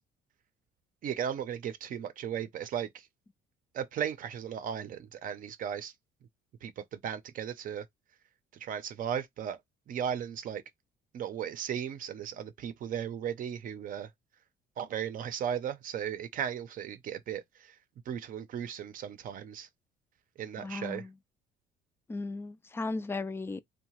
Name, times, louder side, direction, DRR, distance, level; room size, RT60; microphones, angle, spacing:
voice 1, 1.0-3.1 3.7-5.9 6.6-7.9 8.5-9.6 9.9-10.6 11.1-14.1 14.8-17.8 18.1-19.7 20.4-21.1, right 9 dB, 55° right, 0.6 m, -36 dB
voice 2, 20.6-21.1 22.1-23.6, left 3 dB, 15° left, 0.3 m, -36 dB
2.8 x 2.2 x 3.0 m
cardioid pair, 110°, 17 cm